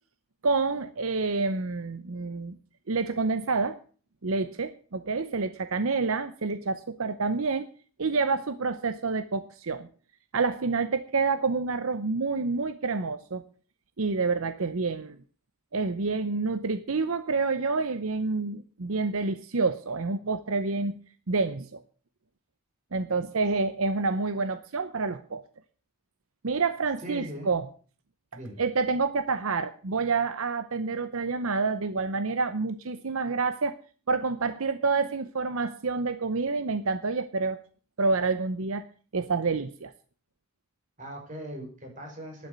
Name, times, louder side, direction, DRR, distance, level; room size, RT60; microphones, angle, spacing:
voice 1, 0.4-2.6 2.9-3.8 4.2-7.7 8.0-9.9 10.3-13.4 14.0-15.2 15.7-21.0 21.3-21.8 22.9-25.4 26.4-27.7 28.6-33.7 34.1-37.6 38.0-38.8 39.1-39.9, right 4 dB, 75° right, 12 dB, 0.8 m, -28 dB
voice 2, 27.0-27.5 28.3-28.6 41.0-42.5, right 1 dB, 35° right, 1 dB, 5.6 m, -40 dB
11.5 x 8.5 x 8.0 m, 0.41 s
head